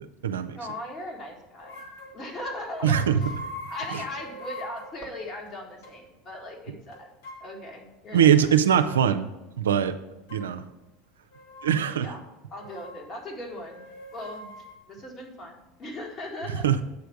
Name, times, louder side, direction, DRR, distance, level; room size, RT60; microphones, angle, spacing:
voice 1, 0.0-0.6 2.8-3.2 3.9-4.0 8.1-9.3 9.6-10.0 10.3-10.6 11.6-12.1 16.5-16.8, right 9 dB, 85° right, 9 dB, 0.4 m, -22 dB
voice 2, 0.5-1.8 2.1-3.3 3.7-7.1 7.4-8.3 12.0-12.2 12.5-16.7, left 1 dB, 40° left, 0 dB, 1.9 m, -39 dB
sound 1, 1.6-2.2 2.7-5.0 5.5-5.6 5.8-6.0 6.9-7.5 8.5-9.0 10.3-10.5 11.3-11.7 12.5-13.0 13.4-14.8, left 2 dB, 75° left, 1.6 m, -41 dB
8.1 x 3.4 x 6.4 m, 0.99 s
hypercardioid pair, 80°, 0 cm